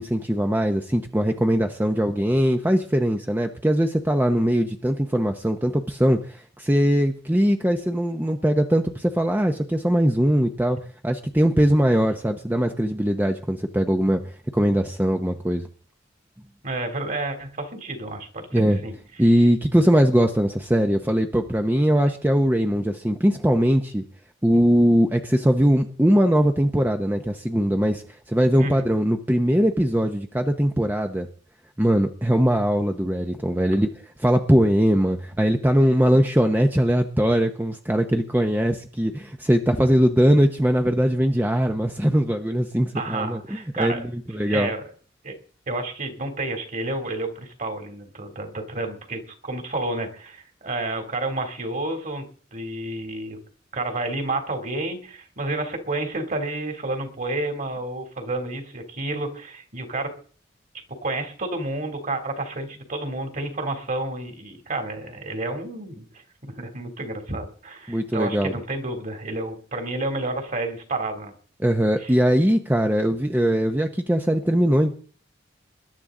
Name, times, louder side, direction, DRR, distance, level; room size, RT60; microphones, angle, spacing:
voice 1, 0.0-10.8 11.0-15.7 18.5-18.8 19.2-24.0 24.4-28.0 28.3-31.3 31.8-33.9 34.2-44.7 67.9-68.5 71.6-74.9, equal, 10° right, 4 dB, 0.9 m, -21 dB
voice 2, 16.6-18.9 28.6-28.9 42.9-44.0 44.5-44.9 45.2-45.3 45.7-52.2 52.5-53.4 53.7-60.1 61.0-71.3 72.0-72.1, right 2 dB, 45° right, 4 dB, 3.0 m, -30 dB
21.0 x 11.5 x 3.8 m, 0.43 s
head